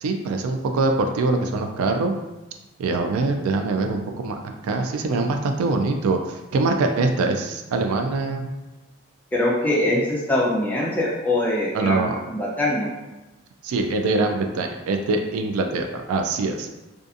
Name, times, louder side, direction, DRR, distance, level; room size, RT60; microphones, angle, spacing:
voice 1, 0.0-2.1 2.8-4.4 4.6-8.5 11.7-12.2 13.6-16.7, right 3 dB, 80° right, 6 dB, 0.3 m, -23 dB
voice 2, 9.3-12.9, left 1 dB, 5° left, -5 dB, 0.4 m, -23 dB
2.6 x 2.4 x 2.4 m, 1.0 s
head